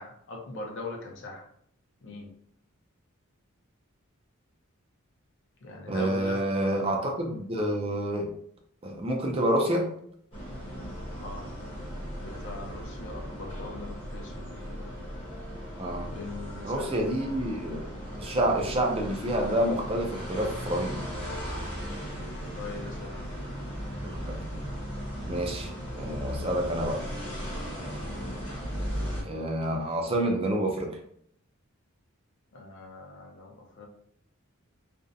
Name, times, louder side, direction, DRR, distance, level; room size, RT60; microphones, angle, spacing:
voice 1, 0.0-1.5 2.0-2.3 5.6-6.4 11.2-11.5 12.2-15.0 16.1-17.0 22.6-23.2 32.5-33.9, left 2 dB, 55° left, 0 dB, 0.5 m, -41 dB
voice 2, 5.9-8.3 8.8-9.9 15.8-16.1 16.6-17.9 18.2-21.0 24.0-24.3 25.3-25.7 25.9-27.0 29.2-30.9, right 1 dB, 25° right, 2 dB, 0.4 m, -28 dB
sound 1, 10.3-29.2, equal, 25° left, 0.8 m, -37 dB
2.5 x 2.1 x 2.5 m, 0.67 s
head